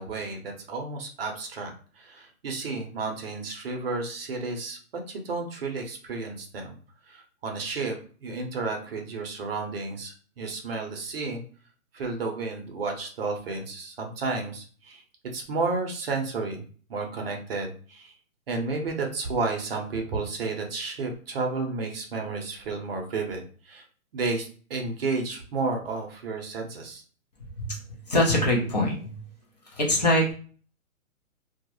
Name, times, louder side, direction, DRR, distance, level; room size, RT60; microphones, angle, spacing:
voice 1, 0.0-1.7 2.0-4.8 5.1-6.8 7.1-8.0 8.2-11.4 11.9-15.0 15.3-16.6 16.9-18.1 18.5-23.8 24.1-27.0, right 3 dB, 45° right, 3 dB, 0.6 m, -32 dB
voice 2, 28.1-29.1 29.7-30.3, left 1 dB, 30° left, -2 dB, 0.5 m, -23 dB
2.3 x 2.1 x 2.9 m, 0.42 s
hypercardioid pair, 145°, 43 cm